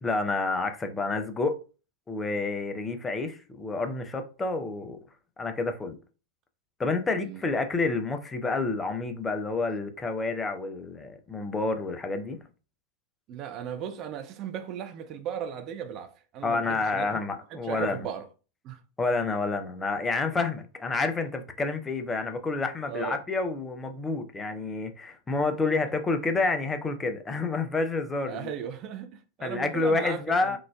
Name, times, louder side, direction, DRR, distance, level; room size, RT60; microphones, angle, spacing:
voice 1, 0.0-1.6 2.1-5.0 5.4-6.0 6.8-12.4 16.4-18.0 19.0-28.5 29.4-30.6, left 3 dB, 15° left, 0.5 m, -29 dB
voice 2, 13.3-18.2 18.6-18.8 22.9-23.2 28.3-30.6, right 9 dB, 35° right, 0.5 m, -37 dB
3.8 x 2.4 x 2.3 m
figure-of-eight pair, 90°, 0 cm